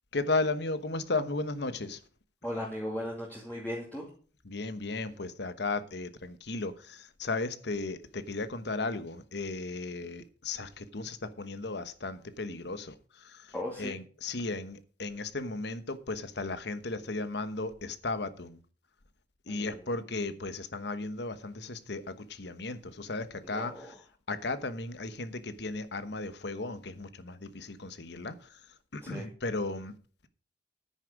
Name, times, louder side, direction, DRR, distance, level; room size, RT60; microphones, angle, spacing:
voice 1, 0.1-2.0 4.4-18.6 19.5-23.9 24.3-28.6 28.9-29.9, left 3 dB, 70° left, 1.1 m, -35 dB
voice 2, 2.4-4.0 13.5-14.0 19.5-19.9 23.4-23.9 29.0-29.3, left 1 dB, 10° left, 2.4 m, -37 dB
9.9 x 9.8 x 5.0 m
head